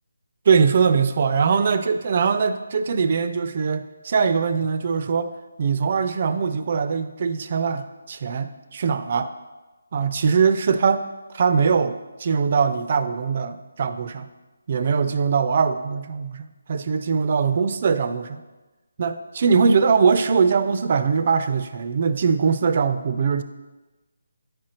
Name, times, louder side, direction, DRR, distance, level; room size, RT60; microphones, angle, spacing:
voice 1, 0.5-5.3 5.6-9.3 9.9-11.1 11.3-14.3 14.7-18.4 19.0-23.4, right 5 dB, 40° right, 11 dB, 0.3 m, -21 dB
9.0 x 5.1 x 2.9 m, 1.2 s
hypercardioid pair, 165°, 0 cm